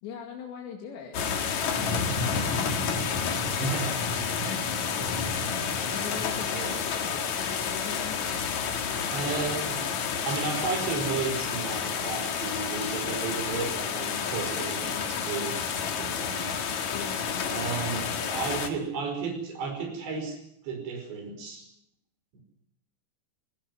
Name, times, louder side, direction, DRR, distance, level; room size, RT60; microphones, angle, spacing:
voice 1, 0.0-2.8 3.6-3.8 4.5-4.6 5.9-8.2 9.0-9.5 10.0-10.3 16.9-19.1, left 6 dB, 80° left, 1 dB, 4.4 m, -42 dB
sound 1, 1.1-18.7, left 6 dB, 50° left, 2.6 m, -30 dB
voice 2, 3.4-4.5 5.4-5.7 6.4-6.8 9.1-9.8 10.3-16.7 17.5-20.4 20.6-21.7 22.3-22.4, right 4 dB, 75° right, 4 dB, 7.5 m, -34 dB
24.5 x 18.0 x 8.0 m, 0.78 s
omnidirectional pair, 5.0 m